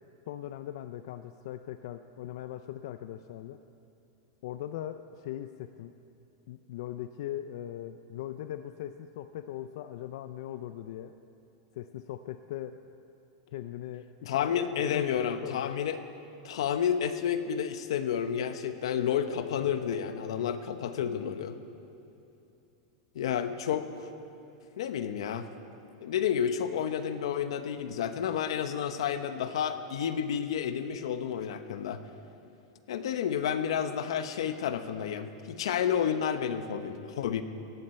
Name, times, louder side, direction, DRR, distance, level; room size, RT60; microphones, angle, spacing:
voice 1, 0.3-3.6 4.4-5.9 6.5-11.1 11.7-12.8 13.5-15.8, left 12 dB, 50° left, 10 dB, 0.4 m, -40 dB
voice 2, 14.3-16.0 16.4-21.5 23.1-24.1 24.8-25.5 26.0-32.0 32.9-37.4, left 8 dB, 75° left, 10 dB, 1.0 m, -30 dB
17.5 x 14.5 x 4.4 m, 2.8 s
supercardioid pair, 180°, 3 cm